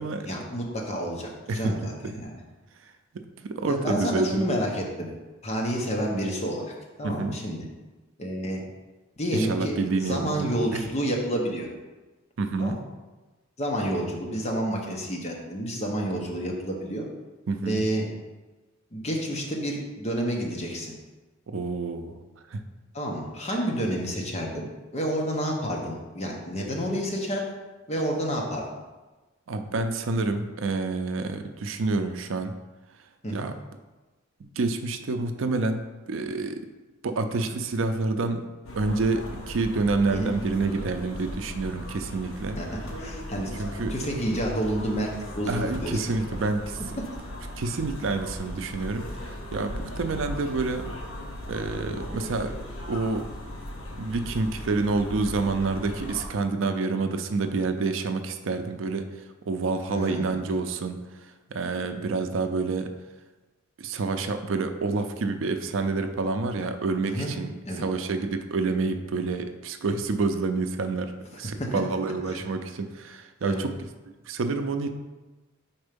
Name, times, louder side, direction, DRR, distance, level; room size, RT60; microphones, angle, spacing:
voice 1, 0.2-2.3 3.6-5.1 5.4-6.7 7.0-7.6 8.2-8.6 9.2-11.7 12.6-12.7 13.6-17.1 17.6-18.1 18.9-20.9 22.9-24.7 24.9-27.4 27.9-28.7 33.2-33.5 40.1-40.3 42.6-43.5 43.9-46.2 59.9-60.4 67.0-67.3 67.7-67.8 71.6-71.7 72.3-72.4 73.4-73.6, equal, 35° left, 0 dB, 1.0 m, -29 dB
voice 2, 3.1-4.5 7.0-7.4 9.3-10.8 12.4-12.8 17.5-17.9 21.5-22.2 22.5-22.6 29.5-32.5 33.3-33.6 34.4-36.7 37.0-38.5 38.8-42.6 43.6-43.9 45.5-46.8 47.6-50.9 51.5-52.6 52.9-53.3 54.0-59.1 59.5-62.9 63.8-71.1 71.4-73.8 74.3-74.9, right 3 dB, 70° right, 8 dB, 0.5 m, -28 dB
sound 1, 38.6-56.3, left 1 dB, 70° left, 0.9 m, -38 dB
4.4 x 4.4 x 5.2 m, 1.2 s
head